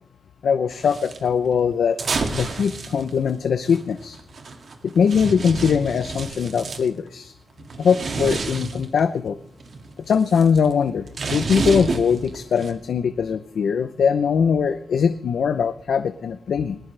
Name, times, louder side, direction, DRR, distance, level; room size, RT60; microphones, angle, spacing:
voice 1, 0.4-2.0 2.3-4.2 4.8-7.3 7.8-9.4 10.1-16.8, left 6 dB, 85° left, 10 dB, 0.7 m, -21 dB
sound 1, 0.7-1.2 2.0-6.9 7.6-9.0 9.4-12.7, right 4 dB, 60° right, 2.3 m, -30 dB
21.0 x 20.0 x 3.4 m, 0.67 s
wide cardioid pair, 110°, 0 cm